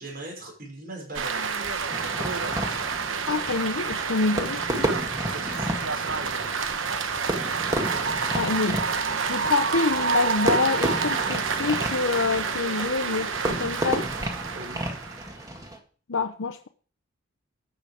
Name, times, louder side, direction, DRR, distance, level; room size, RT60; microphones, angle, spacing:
voice 1, 0.0-1.5 5.2-6.3 14.5-15.0, right 1 dB, 50° right, 5.6 m, -41 dB
sound 1, 1.1-15.4, right 5 dB, 75° right, 1.0 m, -29 dB
Fireworks, 1.9-15.8, right 1 dB, 20° right, 1.9 m, -32 dB
voice 2, 3.3-4.9 8.3-8.8 9.3-14.0 16.1-16.7, left 4 dB, 80° left, 0.7 m, -26 dB
13.0 x 8.7 x 5.0 m
head